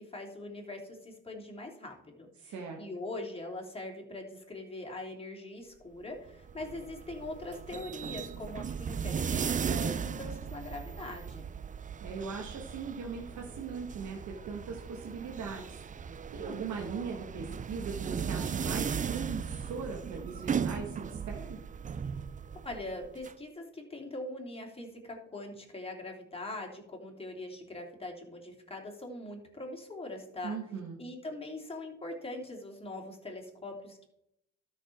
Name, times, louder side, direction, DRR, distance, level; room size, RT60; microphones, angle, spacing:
voice 1, 0.0-11.5 16.4-16.6 22.6-30.6 31.0-34.1, left 2 dB, 20° left, 0 dB, 3.1 m, -42 dB
voice 2, 2.4-2.8 12.0-21.6 30.4-31.0, right 5 dB, 70° right, 1 dB, 1.8 m, -40 dB
sound 1, 6.3-23.3, right 7 dB, 25° right, 0.4 m, -37 dB
12.5 x 6.5 x 4.6 m, 0.78 s
cardioid pair, 90°, 30 cm